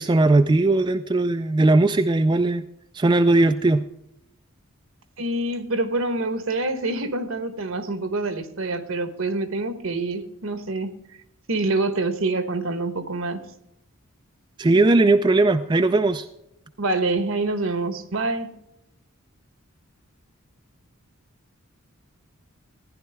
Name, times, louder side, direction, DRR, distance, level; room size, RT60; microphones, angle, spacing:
voice 1, 0.0-2.6 2.9-3.8 14.6-16.3, right 2 dB, 20° right, 9 dB, 0.3 m, -18 dB
voice 2, 5.2-10.9 11.5-13.5 16.8-18.5, right 2 dB, 70° right, 10 dB, 1.1 m, -26 dB
15.0 x 10.5 x 3.4 m, 0.79 s
head